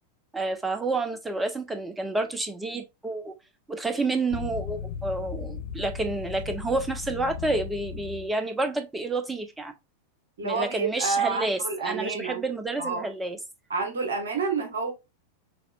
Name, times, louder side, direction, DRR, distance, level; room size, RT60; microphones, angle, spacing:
voice 1, 0.3-3.3 3.7-9.7 10.4-13.4, right 2 dB, 10° right, 0.8 m, -29 dB
sound 1, 4.3-8.3, left 6 dB, 60° left, 0.4 m, -36 dB
voice 2, 10.4-12.4 12.8-13.1 13.7-14.9, right 4 dB, 65° right, 1.2 m, -29 dB
6.0 x 3.0 x 2.4 m
figure-of-eight pair, 90°, 0 cm